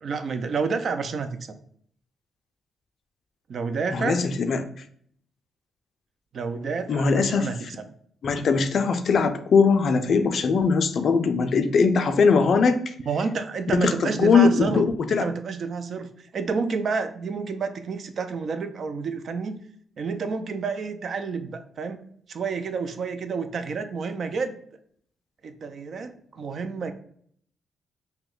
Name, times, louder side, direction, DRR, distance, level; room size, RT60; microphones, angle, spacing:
voice 1, 0.0-1.5 3.5-4.2 6.3-7.6 13.1-19.6 20.0-22.0 22.3-24.6 25.4-26.9, right 5 dB, 60° right, 9 dB, 0.4 m, -29 dB
voice 2, 3.9-4.8 6.9-7.5 8.2-12.9 13.7-15.3, left 5 dB, 60° left, 9 dB, 0.4 m, -21 dB
2.9 x 2.1 x 3.7 m, 0.62 s
cardioid pair, 70°, 0 cm